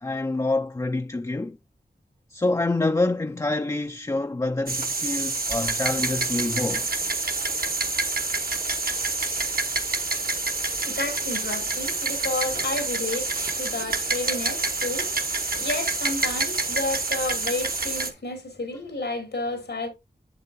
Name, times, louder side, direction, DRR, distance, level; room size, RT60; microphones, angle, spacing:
voice 1, 0.0-1.6 2.3-6.9, left 2 dB, 20° left, 0.4 m, -26 dB
sound 1, 4.7-18.1, right 3 dB, 60° right, 1.1 m, -27 dB
voice 2, 10.8-15.1 15.6-19.9, left 2 dB, 90° left, 2.5 m, -31 dB
7.8 x 7.5 x 2.6 m
wide cardioid pair, 55°, 17 cm